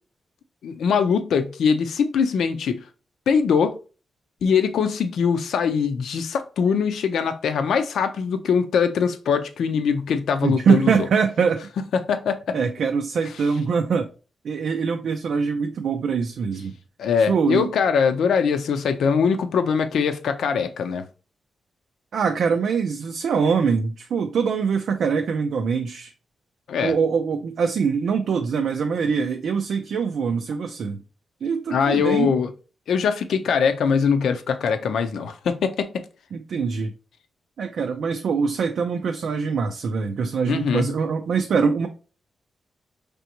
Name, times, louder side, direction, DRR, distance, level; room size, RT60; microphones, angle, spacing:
voice 1, 0.6-2.8 3.3-3.8 4.4-11.1 11.9-12.6 17.0-21.1 26.7-26.9 31.7-32.5 32.9-36.0 40.5-40.9, left 6 dB, 85° left, 0.6 m, -22 dB
voice 2, 10.4-11.7 12.5-14.0 14.4-16.7 17.3-17.7 22.1-26.1 26.8-31.0 31.4-32.4 36.3-36.9 37.6-41.9, right 5 dB, 65° right, 0.4 m, -23 dB
5.1 x 3.4 x 2.9 m
wide cardioid pair, 155°, 0 cm